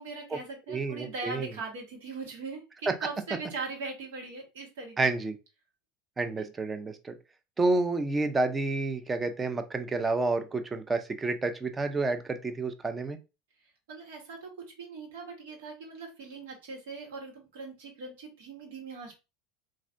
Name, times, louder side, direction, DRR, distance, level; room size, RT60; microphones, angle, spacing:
voice 1, 0.0-5.1 6.4-6.5 13.9-14.5 14.8-19.2, right 4 dB, 85° right, 0 dB, 1.4 m, -40 dB
voice 2, 0.7-1.5 2.9-3.0 5.0-5.4 6.2-7.2 7.6-13.2, right 3 dB, 20° right, 9 dB, 0.5 m, -29 dB
3.2 x 2.5 x 2.5 m, 0.28 s
supercardioid pair, 115°, 0 cm